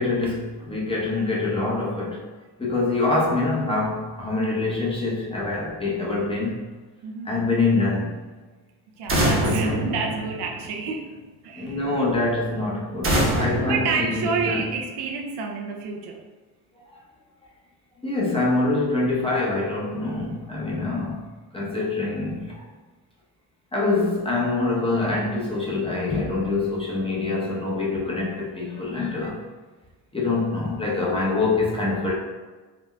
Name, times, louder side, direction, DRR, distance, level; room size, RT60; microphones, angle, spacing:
voice 1, 0.0-2.3 2.6-6.6 7.2-8.2 9.2-9.9 11.6-14.7 16.9-17.0 18.0-21.3 21.5-22.7 23.7-29.4 30.1-32.1, left 3 dB, 15° left, -4 dB, 0.7 m, -25 dB
voice 2, 7.0-7.3 9.0-11.8 13.7-16.2, right 5 dB, 65° right, 1 dB, 0.6 m, -29 dB
sound 1, 9.1-10.9 13.0-14.8, equal, 30° right, 0.9 m, -25 dB
3.9 x 2.1 x 2.2 m, 1.3 s
supercardioid pair, 75°, 43 cm